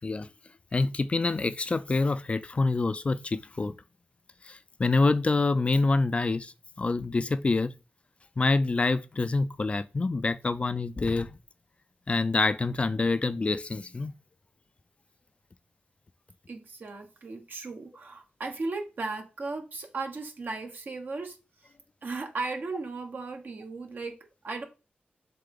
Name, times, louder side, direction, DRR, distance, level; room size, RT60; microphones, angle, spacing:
voice 1, 0.7-3.7 4.4-7.7 8.4-11.4 12.1-14.1, left 3 dB, 35° left, 0.3 m, -26 dB
voice 2, 16.5-21.4 22.0-24.1 24.4-24.6, right 3 dB, 60° right, 1.3 m, -36 dB
6.7 x 3.8 x 3.8 m
wide cardioid pair, 125°, 4 cm